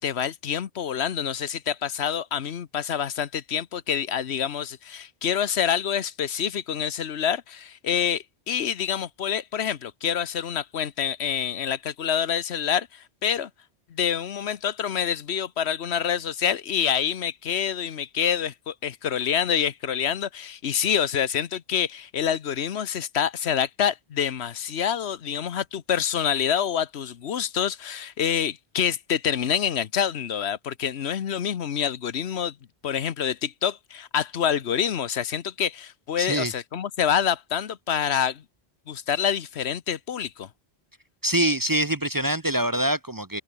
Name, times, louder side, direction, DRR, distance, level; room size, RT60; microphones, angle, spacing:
voice 1, 0.0-13.5 13.9-32.5 32.8-38.4 38.9-40.5, left 8 dB, 85° left, 1.2 m, -27 dB
voice 2, 36.2-36.5 41.2-43.4, right 1 dB, 20° right, 0.8 m, -24 dB
omnidirectional pair, 1.1 m